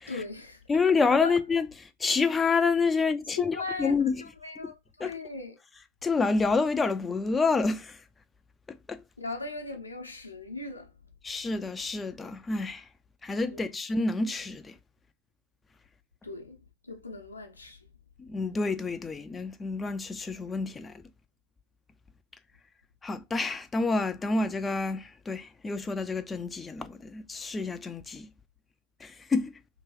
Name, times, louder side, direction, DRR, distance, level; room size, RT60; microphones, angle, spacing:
voice 1, 0.1-0.6 0.9-1.4 3.5-5.6 9.2-11.0 13.5-13.6 16.2-17.9, left 3 dB, 85° left, 0.7 m, -39 dB
voice 2, 0.7-4.1 5.0-5.1 6.0-8.0 8.9-9.0 11.2-12.8 13.2-14.7 18.2-20.9 23.0-28.3 29.0-29.5, left 4 dB, 15° left, 0.3 m, -28 dB
3.0 x 2.9 x 3.0 m
figure-of-eight pair, 90°, 0 cm